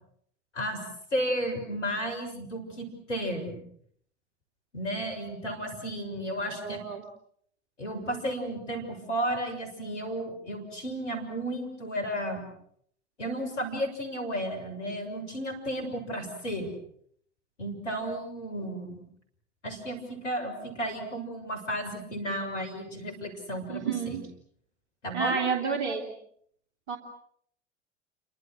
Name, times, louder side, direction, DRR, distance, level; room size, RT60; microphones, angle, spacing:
voice 1, 1.1-3.6 4.7-6.8 7.8-12.5 13.2-16.7 17.6-19.0 19.6-24.2 25.0-25.4, right 1 dB, 80° left, 5 dB, 7.0 m, -33 dB
voice 2, 6.6-7.0 23.7-24.2 25.1-26.1 26.9-27.0, right 5 dB, 65° right, 2 dB, 3.2 m, -30 dB
29.5 x 26.0 x 6.4 m, 0.66 s
figure-of-eight pair, 80°, 35 cm